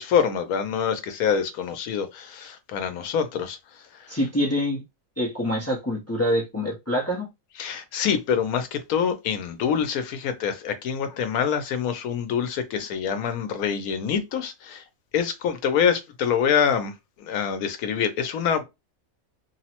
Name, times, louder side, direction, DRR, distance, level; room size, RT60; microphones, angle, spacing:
voice 1, 0.0-4.2 7.6-14.8 15.1-18.6, left 7 dB, 85° left, 1.1 m, -26 dB
voice 2, 4.1-4.8 5.2-7.3, equal, 25° left, 0.3 m, -25 dB
3.2 x 2.0 x 2.8 m
omnidirectional pair, 1.5 m